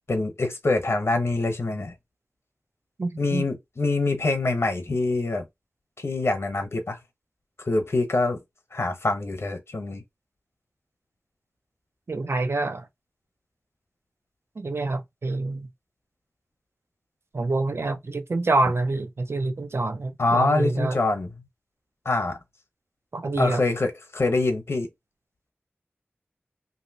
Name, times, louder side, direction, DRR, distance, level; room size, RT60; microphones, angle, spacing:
voice 1, 0.1-1.9 3.2-5.4 6.0-7.0 7.7-8.4 8.7-10.0 20.2-21.3 22.0-22.4 23.4-24.9, left 2 dB, 75° left, 0.9 m, -25 dB
voice 2, 3.0-3.5 12.1-12.9 14.6-15.7 17.3-21.0 23.1-23.6, right 2 dB, 70° right, 0.5 m, -26 dB
2.9 x 2.7 x 2.8 m
wide cardioid pair, 65°, 4 cm